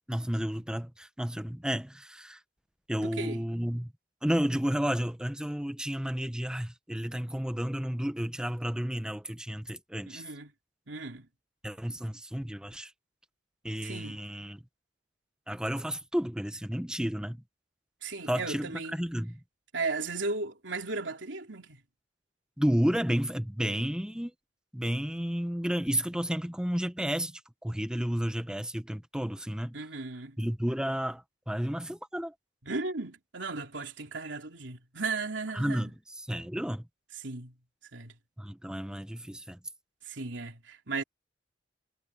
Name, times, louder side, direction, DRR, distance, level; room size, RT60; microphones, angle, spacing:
voice 1, 0.1-2.4 2.9-3.9 4.2-10.2 11.6-12.9 13.6-14.6 15.5-17.4 18.3-19.4 22.6-24.3 24.7-29.8 30.4-32.3 35.5-35.9 36.3-36.9 38.4-39.6, equal, 5° right, 0.9 m, -32 dB
voice 2, 3.0-3.4 10.1-10.5 10.9-11.3 13.8-14.2 18.0-19.0 19.7-21.8 29.7-30.4 32.6-35.9 37.2-37.5 37.9-38.1 40.0-41.0, right 3 dB, 90° right, 3.0 m, -36 dB
head